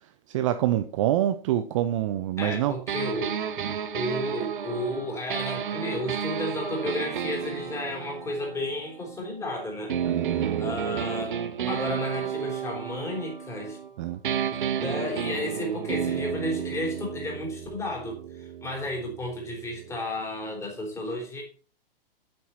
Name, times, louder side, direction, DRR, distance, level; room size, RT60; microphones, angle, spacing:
voice 1, 0.0-2.8 3.6-3.8 10.0-10.8 14.0-14.2, right 12 dB, 35° right, 11 dB, 0.6 m, -27 dB
voice 2, 2.4-3.4 3.9-9.9 10.6-11.4 11.7-13.8 14.5-21.4, left 1 dB, 10° left, 0 dB, 3.5 m, -32 dB
sound 1, 2.9-9.4 9.9-13.9 14.2-20.0, right 8 dB, 55° right, 1.1 m, -32 dB
8.8 x 8.6 x 4.3 m, 0.39 s
figure-of-eight pair, 115°, 29 cm